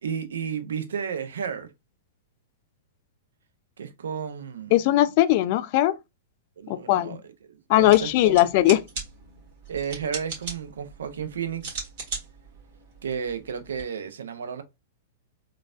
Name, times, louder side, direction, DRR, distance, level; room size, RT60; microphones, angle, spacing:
voice 1, 0.0-1.7 3.8-4.7 6.6-7.2 7.5-8.5 9.7-11.8 13.0-14.6, right 7 dB, 75° right, 0.5 m, -32 dB
voice 2, 4.7-6.0 6.7-7.2 7.7-8.8, left 15 dB, 50° left, 0.3 m, -19 dB
sound 1, 7.7-13.8, right 4 dB, 55° right, 1.7 m, -39 dB
3.9 x 2.3 x 2.4 m
hypercardioid pair, 110°, 0 cm